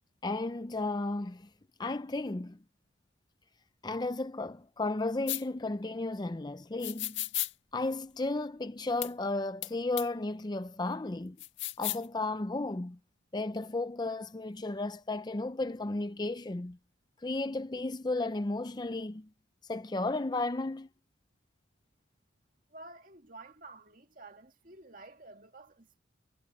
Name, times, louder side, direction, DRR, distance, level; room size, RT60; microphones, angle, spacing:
voice 1, 0.2-1.5 1.8-2.6 3.8-7.2 7.7-11.4 11.8-13.0 13.3-16.8 17.2-19.3 19.7-20.9, left 2 dB, 20° left, 0.5 m, -34 dB
sound 1, 5.3-5.4 6.8-7.5 9.0-9.1 9.6-9.7 10.0-10.1 11.4-12.1, left 15 dB, 70° left, 1.6 m, -34 dB
voice 2, 22.7-26.0, right 2 dB, 40° right, 2.1 m, -51 dB
head